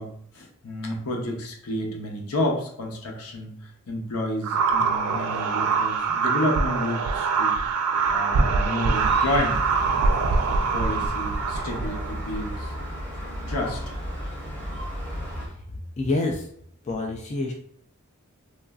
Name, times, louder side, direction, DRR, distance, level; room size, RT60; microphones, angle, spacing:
voice 1, 0.0-7.6 8.1-9.6 10.4-12.7 13.5-13.8, left 1 dB, 80° left, 1 dB, 0.7 m, -30 dB
sound 1, 4.4-12.5, right 4 dB, 75° right, 0.3 m, -24 dB
Gull seagull, 8.9-15.5, equal, 10° left, 0.7 m, -34 dB
voice 2, 16.0-16.5 16.8-17.5, left 2 dB, 30° left, 1 dB, 0.3 m, -27 dB
3.1 x 2.5 x 2.3 m, 0.66 s
head